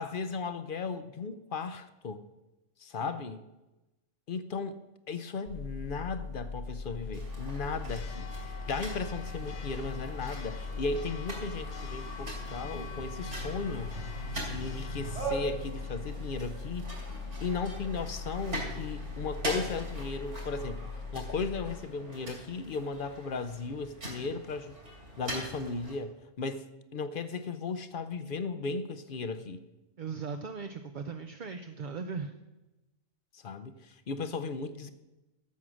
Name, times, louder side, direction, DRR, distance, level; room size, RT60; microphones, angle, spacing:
voice 1, 0.0-2.2 2.8-3.4 4.3-4.8 5.1-8.3 8.7-13.9 14.5-16.9 17.4-20.8 21.1-24.8 25.2-26.7 26.9-29.6 33.3-34.9, left 4 dB, 50° left, 12 dB, 0.7 m, -36 dB
Church bell, 5.5-21.8, left 4 dB, 80° left, 1.3 m, -40 dB
sound 1, 7.1-26.0, right 1 dB, 65° right, 4.1 m, -41 dB
voice 2, 30.0-32.3, right 5 dB, 50° right, 6 dB, 0.6 m, -38 dB
13.0 x 7.4 x 6.3 m, 1.0 s
omnidirectional pair, 1.3 m